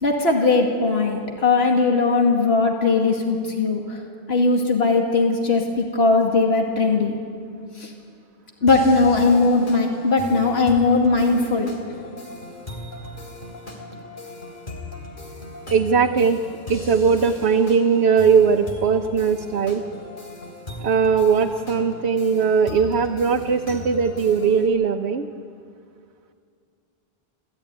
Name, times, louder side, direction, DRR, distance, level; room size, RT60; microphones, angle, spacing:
voice 1, 0.0-4.0 4.3-7.2 7.8-7.9 8.6-11.7, left 3 dB, 75° left, 1 dB, 2.4 m, -19 dB
sound 1, 8.7-24.7, left 2 dB, 50° left, 3.3 m, -38 dB
voice 2, 15.7-16.4 16.7-19.8 20.8-25.3, right 6 dB, 85° right, 3 dB, 1.1 m, -19 dB
28.0 x 15.5 x 9.5 m, 2.4 s
omnidirectional pair, 1.1 m